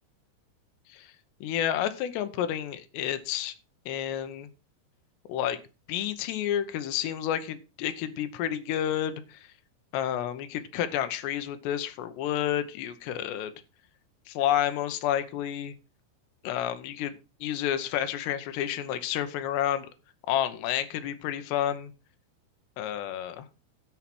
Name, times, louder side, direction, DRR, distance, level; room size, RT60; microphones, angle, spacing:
voice 1, 1.4-3.5 3.9-4.5 5.3-5.6 5.9-9.4 9.9-13.5 14.3-15.7 16.4-17.1 17.4-19.9 20.3-21.9 22.8-23.5, left 10 dB, 75° left, 10 dB, 2.7 m, -30 dB
13.0 x 4.8 x 6.0 m, 0.31 s
omnidirectional pair, 5.8 m